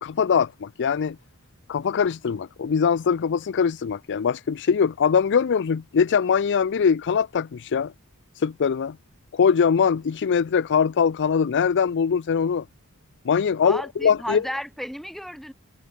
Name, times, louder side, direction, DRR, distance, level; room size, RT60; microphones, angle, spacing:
voice 1, 0.0-1.2 1.7-7.9 8.3-9.0 9.3-12.7 13.2-14.4, left 6 dB, 55° left, 0.4 m, -22 dB
voice 2, 13.6-15.5, equal, ahead, 7.3 m, -33 dB
head